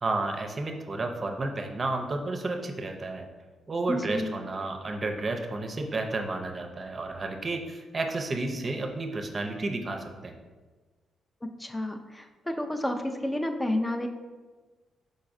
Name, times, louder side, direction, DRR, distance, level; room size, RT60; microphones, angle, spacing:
voice 1, 0.0-3.3 3.7-10.3, right 2 dB, 40° right, 4 dB, 0.6 m, -31 dB
voice 2, 3.9-4.4 11.6-14.1, left 1 dB, 15° left, 6 dB, 0.5 m, -30 dB
4.7 x 4.0 x 2.6 m, 1.3 s
supercardioid pair, 55°, 0 cm